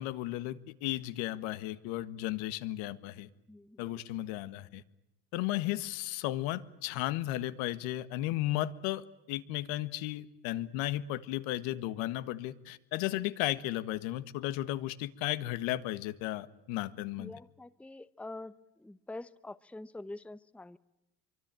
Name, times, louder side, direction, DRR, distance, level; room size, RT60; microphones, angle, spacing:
voice 1, 0.0-3.3 3.8-4.8 5.3-17.3, left 15 dB, 75° left, 1.7 m, -34 dB
voice 2, 3.5-3.9 17.2-18.5 18.8-20.8, left 2 dB, 5° left, 0.9 m, -45 dB
24.5 x 24.0 x 9.0 m
supercardioid pair, 90°, 48 cm